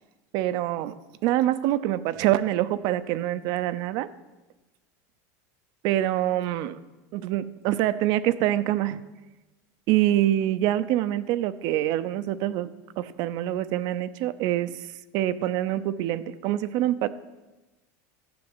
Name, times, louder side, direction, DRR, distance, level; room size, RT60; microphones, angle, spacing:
voice 1, 0.3-4.1 5.8-6.8 7.1-9.0 9.9-12.7 13.0-14.9 15.1-17.1, right 13 dB, 50° right, 14 dB, 0.7 m, -25 dB
14.0 x 7.0 x 8.9 m, 1.1 s
supercardioid pair, 145°, 9 cm